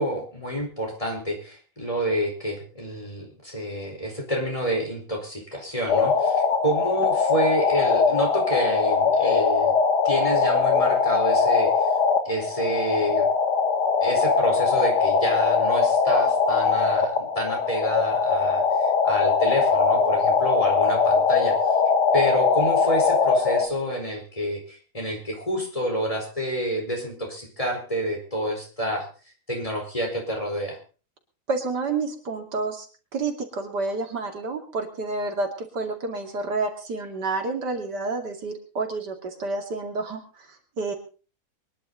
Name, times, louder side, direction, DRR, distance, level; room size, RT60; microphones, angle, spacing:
voice 1, 0.0-9.7 10.0-11.9 12.2-13.3 14.0-21.6 22.1-29.1 29.5-30.8, equal, 20° left, 1 dB, 4.6 m, -28 dB
sound 1, 5.9-23.7, left 5 dB, 80° left, 2.1 m, -21 dB
voice 2, 31.5-32.9 33.1-40.9, right 3 dB, 90° right, 3 dB, 3.2 m, -29 dB
24.0 x 11.0 x 4.0 m, 0.37 s
omnidirectional pair, 1.8 m